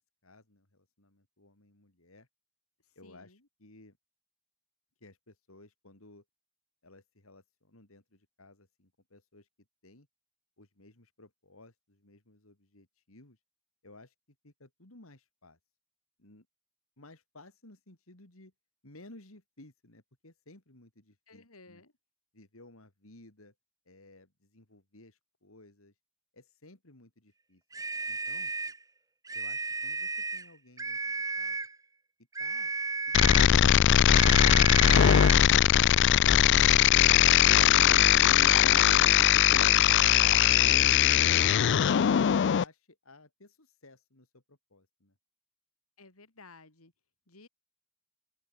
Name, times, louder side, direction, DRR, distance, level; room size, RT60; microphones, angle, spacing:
voice 1, 0.0-2.3 3.0-4.0 5.0-6.2 6.8-9.5 9.8-10.1 10.6-13.4 13.8-14.1 14.4-15.6 16.2-16.5 17.0-18.5 18.8-21.8 22.3-23.5 23.9-25.9 26.3-27.6 28.1-28.5 29.3-31.6 32.4-32.7 33.1-35.4 35.7-37.0 38.4-41.6 42.0-45.1, left 2 dB, 70° left, 3.6 m, -57 dB
voice 2, 2.8-3.5 21.3-21.9 36.2-37.0 46.0-46.9 47.3-47.5, left 3 dB, 85° left, 4.1 m, -56 dB
sound 1, 27.7-28.8 29.3-30.5 30.8-31.8 32.4-33.6 34.1-35.5, right 3 dB, 15° right, 1.2 m, -34 dB
sound 2, 33.1-42.6, left 10 dB, 55° left, 0.4 m, -21 dB
open air
head